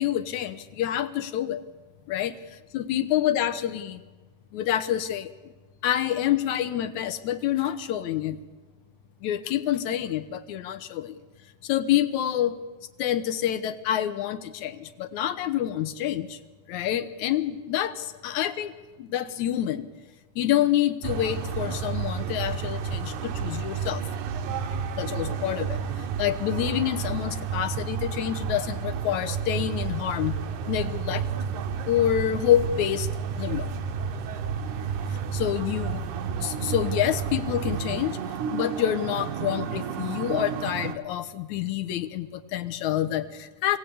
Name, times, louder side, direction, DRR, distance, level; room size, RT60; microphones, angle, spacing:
voice 1, 0.0-1.6 2.1-2.4 2.7-4.0 4.5-5.3 5.8-8.4 9.2-11.1 11.6-12.6 13.0-16.4 16.7-18.7 19.0-19.9 20.4-24.0 25.0-25.8 26.2-30.4 30.7-31.2 31.9-33.1 33.4-33.7 35.3-36.0 36.4-38.2 38.5-43.8, left 11 dB, 70° left, 10 dB, 2.3 m, -27 dB
sound 1, 21.0-40.9, right 6 dB, 75° right, 2.4 m, -31 dB
26.5 x 18.0 x 8.6 m, 1.3 s
omnidirectional pair, 3.7 m